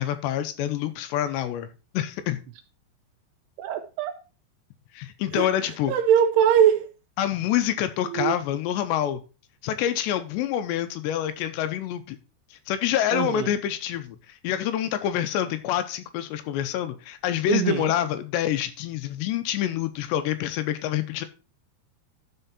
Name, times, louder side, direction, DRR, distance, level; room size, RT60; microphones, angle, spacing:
voice 1, 0.0-1.7 1.9-2.4 4.9-5.9 7.2-9.2 9.6-12.2 12.5-21.3, left 11 dB, 80° left, 2.8 m, -27 dB
voice 2, 3.6-4.1 5.3-5.5 5.9-6.9 8.1-8.4 13.1-13.6 17.5-17.9, right 9 dB, 80° right, 2.5 m, -22 dB
12.5 x 4.5 x 4.1 m
omnidirectional pair, 5.2 m